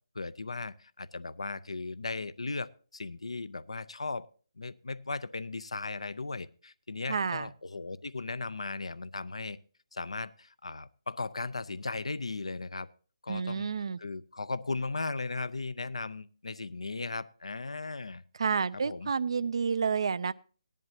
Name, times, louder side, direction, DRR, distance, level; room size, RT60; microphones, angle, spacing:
voice 1, 0.1-4.3 4.6-9.6 9.9-12.9 13.2-13.7 14.0-18.2 18.7-19.1, left 3 dB, 75° left, 17 dB, 0.5 m, -37 dB
voice 2, 7.1-7.5 13.3-14.0 18.4-20.3, right 5 dB, 55° right, 17 dB, 0.4 m, -30 dB
17.5 x 11.0 x 2.8 m, 0.40 s
figure-of-eight pair, 150°, 3 cm